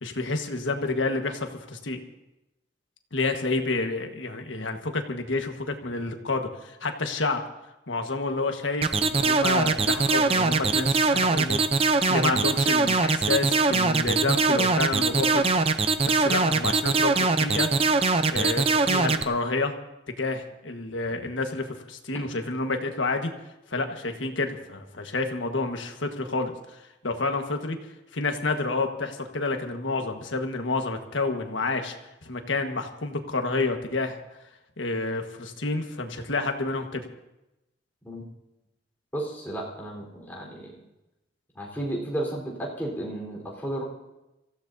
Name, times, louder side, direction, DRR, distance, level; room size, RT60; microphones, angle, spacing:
voice 1, 0.0-2.0 3.1-7.4 7.9-15.4 16.1-17.7 18.3-19.7 20.2-23.3 23.7-27.8 28.1-31.9 32.2-34.2 34.8-37.0, left 3 dB, 85° left, 5 dB, 1.4 m, -29 dB
sound 1, 8.8-19.2, right 3 dB, 30° right, 0.6 m, -22 dB
voice 2, 39.1-40.8 41.5-43.8, right 1 dB, 10° left, -3 dB, 3.9 m, -33 dB
26.5 x 15.0 x 2.7 m, 0.94 s
head